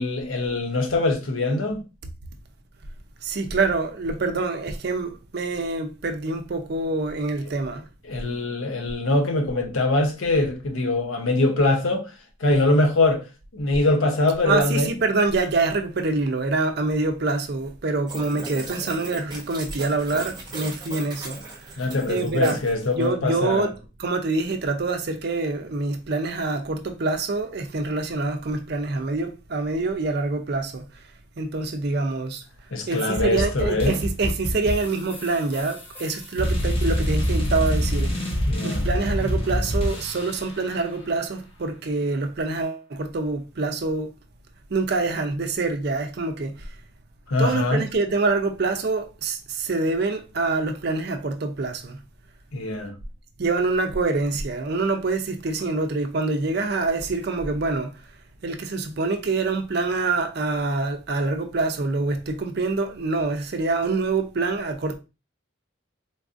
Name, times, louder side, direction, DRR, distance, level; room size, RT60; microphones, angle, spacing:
voice 1, 0.0-1.8 8.1-12.1 12.4-13.2 13.5-14.9 21.8-23.7 32.7-34.0 38.5-38.9 47.3-47.8 52.5-52.9, left 2 dB, 85° left, 0.7 m, -23 dB
voice 2, 3.2-7.9 14.4-22.7 22.9-31.0 31.4-32.4 32.9-38.3 38.6-44.1 44.7-46.8 47.4-52.0 53.4-58.1 58.4-65.0, right 3 dB, 50° right, 0.5 m, -26 dB
sound 1, 18.1-23.1, right 2 dB, 20° right, 0.8 m, -37 dB
sound 2, 33.2-40.5, equal, 30° left, 0.9 m, -26 dB
3.9 x 2.4 x 2.5 m
head